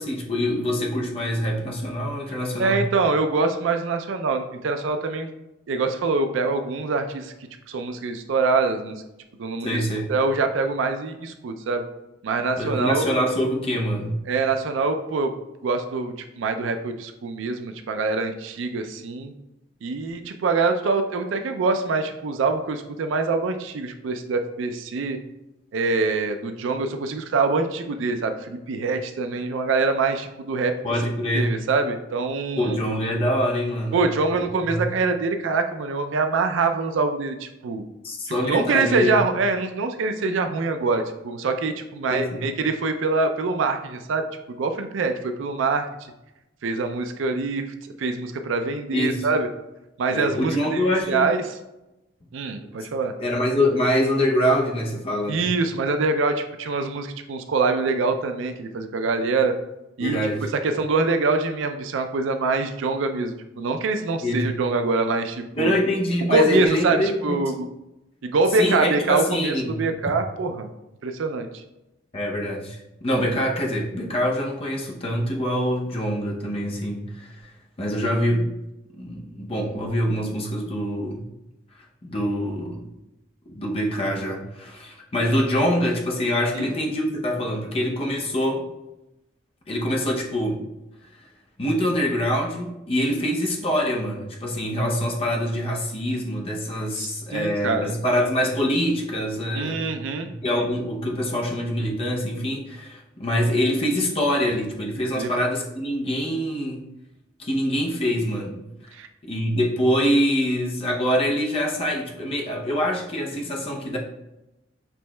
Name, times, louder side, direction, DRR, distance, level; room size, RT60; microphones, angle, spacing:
voice 1, 0.0-2.8 9.6-10.1 12.6-14.2 30.8-31.5 32.6-34.0 34.6-34.8 38.0-39.2 42.1-42.5 48.9-49.3 50.1-51.3 53.2-55.5 60.0-60.5 64.2-64.5 65.5-67.4 68.6-69.8 72.1-77.5 77.8-78.5 79.0-81.3 82.0-82.8 83.5-88.6 89.7-90.6 91.6-99.9 100.3-106.8 107.4-108.6 109.2-114.0, equal, 30° left, -1 dB, 0.6 m, -25 dB
voice 2, 2.6-5.3 5.7-7.3 7.7-9.0 9.4-9.8 10.1-11.8 12.2-13.1 14.3-15.3 15.6-19.3 19.8-25.2 25.7-30.7 31.3-32.8 33.9-37.8 38.4-45.8 46.6-47.7 48.0-49.5 50.0-51.4 52.3-53.1 55.3-59.6 60.0-60.2 60.5-65.8 66.3-67.7 68.2-70.7 71.0-71.5 86.5-86.7 96.9-98.0 99.5-100.3 105.1-105.3 109.0-109.1, right 3 dB, 80° right, 7 dB, 0.4 m, -24 dB
5.9 x 3.1 x 2.2 m, 0.94 s
head